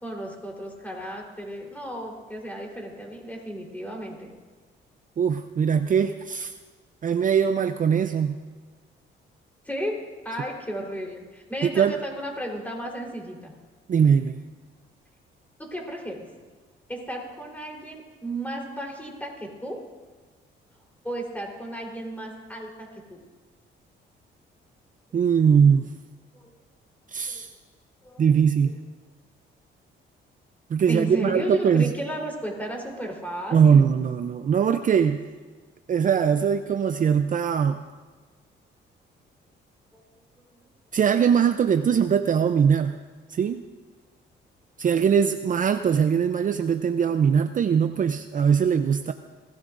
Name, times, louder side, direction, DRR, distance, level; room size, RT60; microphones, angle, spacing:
voice 1, 0.0-4.3 9.6-13.5 15.6-16.3 16.9-19.8 21.0-23.2 25.1-25.2 26.3-26.5 27.3-27.4 28.0-28.3 28.6-28.7 30.9-33.9 39.9-40.2, right 1 dB, 10° left, -1 dB, 3.8 m, -34 dB
voice 2, 5.2-6.5 7.0-8.4 11.6-12.0 13.9-14.4 25.1-25.9 27.1-27.5 28.2-28.8 30.7-31.9 33.5-35.3 35.9-37.8 40.9-43.0 43.3-43.7 44.8-49.1, right 7 dB, 40° right, 9 dB, 0.5 m, -21 dB
22.5 x 16.0 x 2.6 m, 1.4 s
cardioid pair, 90°, 20 cm